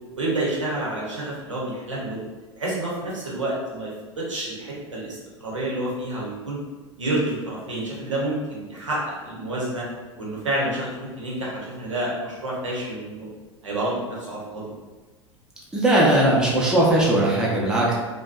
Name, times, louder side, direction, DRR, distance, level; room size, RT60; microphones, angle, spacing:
voice 1, 0.2-2.2 2.5-6.6 7.0-9.8 10.2-13.3 13.6-14.7, right 1 dB, 80° right, -5 dB, 0.8 m, -29 dB
voice 2, 15.7-17.9, right 1 dB, 5° right, -5 dB, 0.6 m, -19 dB
2.6 x 2.2 x 2.4 m, 1.3 s
figure-of-eight pair, 80°, 16 cm